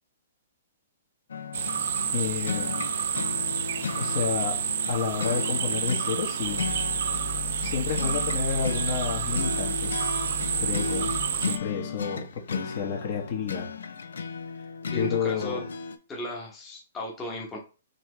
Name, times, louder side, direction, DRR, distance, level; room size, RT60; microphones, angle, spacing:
sound 1, 1.3-16.0, left 5 dB, 85° left, 0.4 m, -35 dB
sound 2, 1.5-11.6, right 8 dB, 65° right, 0.4 m, -29 dB
voice 1, 2.1-2.9 4.0-4.5 4.9-6.6 7.6-10.1 10.6-13.6 14.9-15.7, left 6 dB, 50° left, 1 dB, 1.2 m, -30 dB
sound 3, 6.4-11.9, left 4 dB, 85° right, 1.5 m, -37 dB
voice 2, 14.8-15.6 16.1-17.6, left 1 dB, 15° left, -2 dB, 1.0 m, -35 dB
4.0 x 2.8 x 3.2 m, 0.33 s
hypercardioid pair, 145°, 0 cm